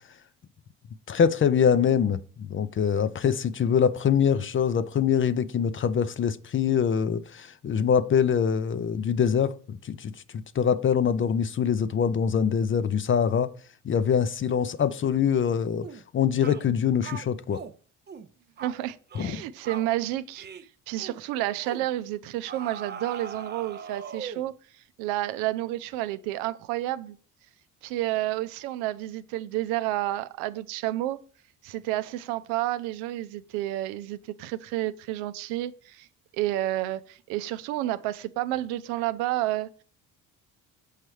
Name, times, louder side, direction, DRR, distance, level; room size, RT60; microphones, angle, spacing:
voice 1, 1.1-13.5 13.8-15.9 16.1-17.6 19.2-19.4, left 7 dB, 30° left, 0.5 m, -24 dB
sound 1, 15.8-16.0 16.4-16.7 17.0-17.7 18.1-18.3 18.6-18.8 19.1-19.4 19.6-19.9 20.4-20.7 21.0-21.2 21.6-21.9 22.5-24.5, right 6 dB, 25° right, 0.6 m, -40 dB
voice 2, 18.6-20.5 20.9-27.2 27.8-31.2 31.6-36.1 36.4-39.7, right 15 dB, 80° right, 0.6 m, -30 dB
6.5 x 5.4 x 3.2 m
supercardioid pair, 65°, 39 cm